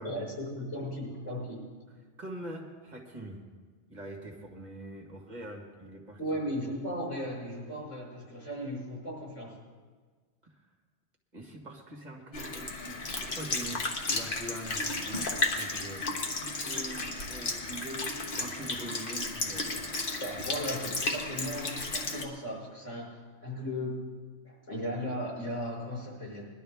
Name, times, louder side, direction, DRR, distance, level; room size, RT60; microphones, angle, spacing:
voice 1, 0.0-1.6 6.2-9.5 20.2-24.0 24.4-26.4, equal, 90° left, -5 dB, 5.8 m, -36 dB
voice 2, 2.2-3.4 3.9-6.4 10.4-10.6 11.3-16.1 16.4-19.9, right 1 dB, 35° right, 1 dB, 1.7 m, -43 dB
Sink (filling or washing) / Liquid, 12.3-22.2, left 2 dB, 50° left, 1.3 m, -33 dB
20.5 x 11.5 x 3.5 m, 1.5 s
omnidirectional pair, 1.2 m